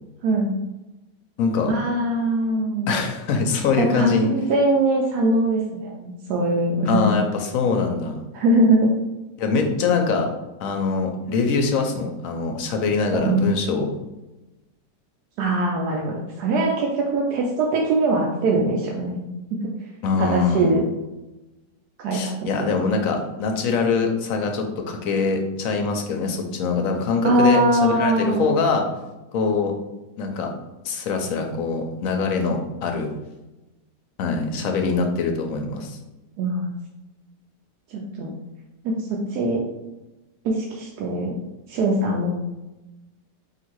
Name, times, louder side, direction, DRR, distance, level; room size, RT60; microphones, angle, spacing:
voice 1, 0.2-0.5 1.6-2.9 3.8-7.1 8.3-8.9 13.1-13.4 15.4-19.2 19.6-19.7 20.2-20.8 22.0-22.3 22.6-22.7 27.2-28.5 32.4-32.5 36.4-36.7 37.9-38.3 38.8-39.6 40.4-41.3 41.7-42.3, right 2 dB, 70° right, -1 dB, 1.1 m, -22 dB
voice 2, 1.4-1.7 2.9-4.3 6.8-8.2 9.4-10.3 10.6-13.9 20.0-20.7 22.1-28.9 29.3-29.7 30.2-30.5 30.8-33.1 34.2-36.0, left 4 dB, 70° left, 4 dB, 0.8 m, -23 dB
3.8 x 2.6 x 4.5 m, 1.0 s
omnidirectional pair, 1.8 m